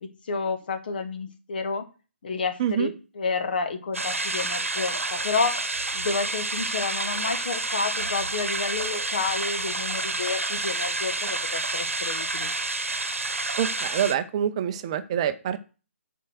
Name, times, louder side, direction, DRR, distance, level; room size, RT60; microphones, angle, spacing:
voice 1, 0.0-1.8 2.2-5.6 5.9-12.5, left 4 dB, 40° left, 8 dB, 1.5 m, -30 dB
voice 2, 2.6-2.9 13.6-15.6, right 9 dB, 25° right, 10 dB, 0.7 m, -26 dB
sound 1, 3.9-14.2, right 2 dB, 70° right, 1.1 m, -29 dB
7.4 x 4.6 x 6.4 m, 0.33 s
figure-of-eight pair, 140°, 7 cm